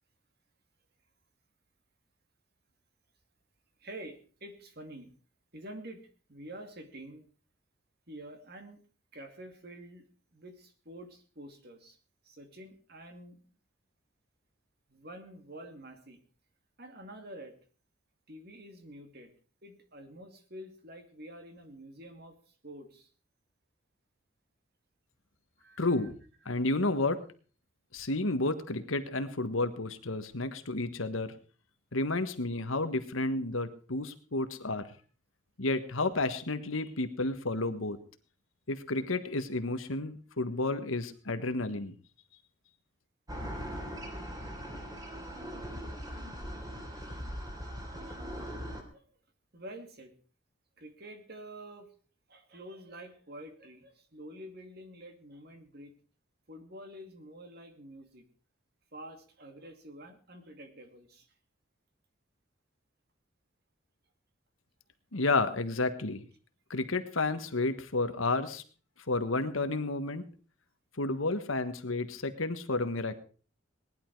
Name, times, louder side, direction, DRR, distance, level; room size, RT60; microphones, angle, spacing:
voice 1, 3.8-5.1 5.5-7.2 8.1-8.8 9.1-12.0 12.3-13.4 14.9-16.2 16.8-17.6 18.3-19.3 19.6-22.4 22.6-23.1 25.6-26.1 46.9-47.2 48.1-48.5 48.9-49.0 49.5-50.1 50.8-51.9 52.3-55.9 56.5-58.2 58.9-61.3, right 1 dB, 50° right, 6 dB, 2.5 m, -48 dB
voice 2, 25.8-26.2 26.4-27.2 27.9-31.3 31.9-34.8 35.6-38.0 38.7-41.9 65.1-66.2 66.7-68.6 69.1-70.3 71.0-73.2, left 2 dB, 90° left, 10 dB, 1.5 m, -31 dB
sound 1, 43.3-48.8, equal, 20° right, 3.0 m, -40 dB
19.0 x 11.0 x 4.7 m, 0.40 s
head